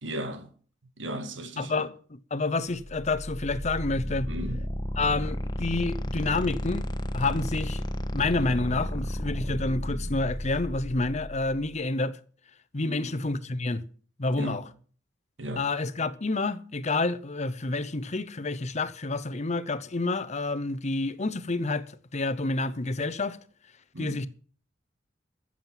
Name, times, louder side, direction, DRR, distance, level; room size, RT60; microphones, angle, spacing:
voice 1, 0.0-0.5 1.0-1.7 4.3-4.6 12.8-13.1 14.4-14.6 15.4-15.7 23.9-24.2, right 1 dB, 80° right, 2.0 m, -35 dB
voice 2, 1.6-4.3 5.0-6.9 7.1-7.8 8.1-12.2 12.7-13.8 14.2-14.7 15.6-21.9 22.1-23.4 24.0-24.3, left 3 dB, 40° left, 0.8 m, -29 dB
sound 1, 2.8-11.6, equal, 25° left, 1.5 m, -33 dB
15.0 x 7.5 x 7.4 m
head